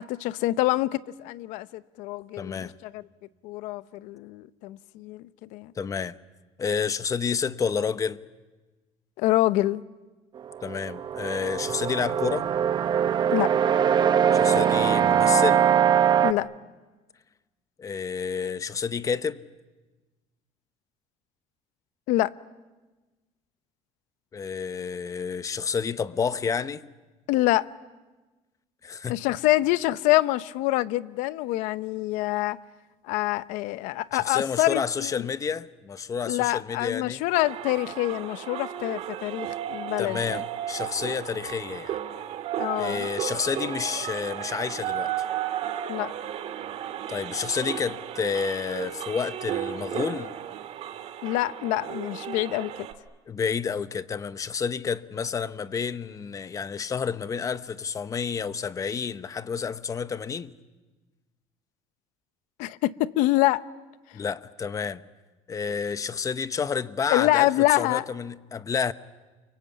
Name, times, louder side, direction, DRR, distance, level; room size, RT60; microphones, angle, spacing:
voice 1, 0.0-3.0 3.4-5.7 9.2-9.8 13.3-13.5 16.2-16.5 22.1-22.3 27.3-27.7 29.1-32.6 33.1-35.3 36.3-40.4 42.6-43.1 45.9-46.1 51.2-52.7 62.6-63.6 67.1-68.0, left 17 dB, 85° left, 0.8 m, -26 dB
voice 2, 2.4-2.7 5.8-6.2 6.6-8.2 10.6-12.5 14.3-15.7 17.8-19.4 24.3-26.9 28.8-29.2 34.1-37.2 40.0-42.0 42.8-45.1 47.1-50.3 53.3-60.5 64.1-65.0 65.5-67.5 67.8-68.9, left 6 dB, 25° left, 0.9 m, -30 dB
sound 1, 10.4-16.3, right 9 dB, 35° right, 0.8 m, -22 dB
sound 2, 37.3-52.9, right 10 dB, 55° right, 2.1 m, -34 dB
29.0 x 23.5 x 8.5 m
cardioid pair, 135°, 13 cm